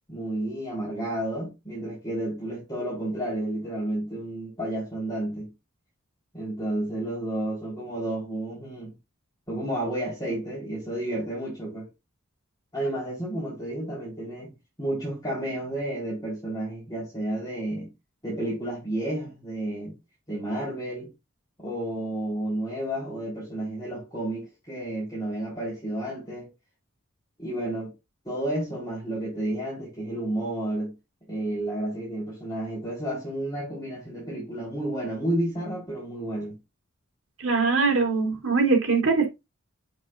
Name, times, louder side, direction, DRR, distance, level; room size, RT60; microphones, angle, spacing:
voice 1, 0.1-5.5 6.3-8.9 9.5-11.9 12.7-14.5 14.8-17.9 18.2-19.9 20.3-21.1 21.6-26.5 27.4-27.9 28.2-30.9 31.3-36.6, right 1 dB, 20° left, 4.4 m, -31 dB
voice 2, 37.4-39.3, right 4 dB, 70° right, 3.2 m, -22 dB
8.0 x 7.2 x 2.6 m
head